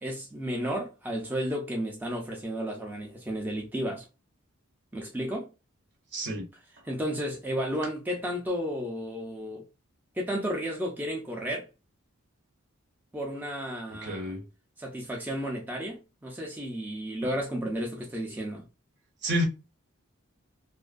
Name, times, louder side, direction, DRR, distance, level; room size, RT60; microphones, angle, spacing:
voice 1, 0.0-4.0 4.9-5.5 6.8-9.6 10.2-11.7 13.1-14.3 14.8-18.6, equal, 10° right, 0.4 m, -33 dB
voice 2, 6.1-6.5 14.0-14.4 19.2-19.4, equal, 55° right, 0.7 m, -29 dB
2.5 x 2.3 x 2.3 m
head